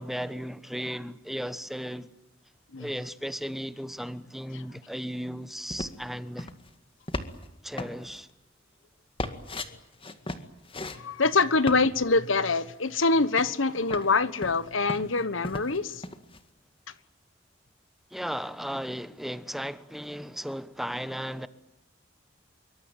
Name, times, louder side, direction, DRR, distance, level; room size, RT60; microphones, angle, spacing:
voice 1, 0.0-2.1 2.8-6.5 7.6-8.3 18.1-21.5, equal, ahead, 1.2 m, -35 dB
sound 1, 5.7-6.1 6.4-6.7 7.1-7.5 7.8-8.2 9.2-9.7 10.0-11.0 11.3-11.8 13.0-13.1 13.4-14.1 14.4-15.8 16.0-16.4, left 2 dB, 30° left, 2.0 m, -36 dB
voice 2, 10.9-16.0, left 3 dB, 85° left, 1.4 m, -25 dB
26.0 x 24.0 x 9.0 m
head